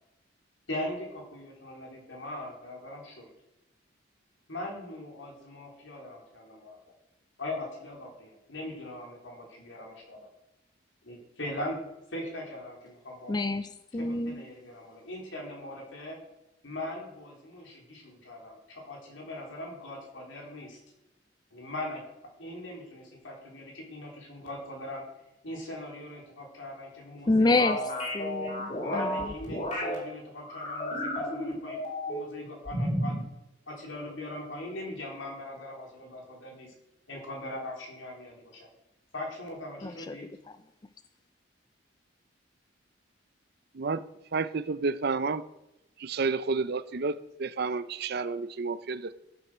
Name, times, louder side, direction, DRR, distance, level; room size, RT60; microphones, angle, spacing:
voice 1, 0.7-3.3 4.5-6.8 7.4-10.3 11.0-11.8 12.1-13.3 13.9-16.2 16.6-20.8 21.5-22.0 22.4-25.0 25.4-28.4 28.8-33.2 33.7-36.7 37.1-38.7 39.1-40.3, left 1 dB, 80° left, -1 dB, 3.7 m, -40 dB
voice 2, 13.3-14.4 27.3-27.8 28.1-29.1 39.8-40.2, left 2 dB, 20° left, 11 dB, 0.4 m, -27 dB
sound 1, 27.6-30.0 30.4-32.3 32.7-33.2, left 1 dB, 40° left, 4.7 m, -32 dB
voice 3, 44.3-45.4 46.0-49.1, right 4 dB, 55° right, 15 dB, 0.5 m, -30 dB
13.0 x 7.7 x 6.1 m, 0.92 s
head